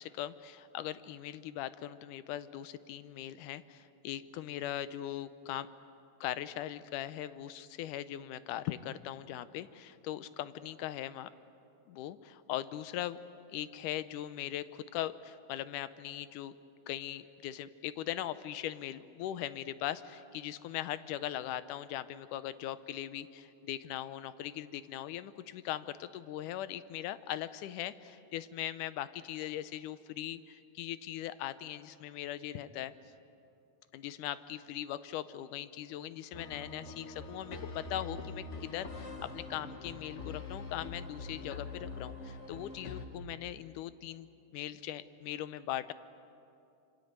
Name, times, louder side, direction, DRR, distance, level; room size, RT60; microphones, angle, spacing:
voice 1, 0.0-5.7 6.2-11.3 11.9-13.2 13.5-16.6 16.9-32.9 33.9-44.3 44.5-45.9, left 12 dB, 90° left, 14 dB, 2.3 m, -40 dB
sound 1, 36.3-43.1, left 3 dB, 40° left, 1.1 m, -44 dB
26.5 x 24.5 x 8.1 m, 2.6 s
omnidirectional pair, 3.5 m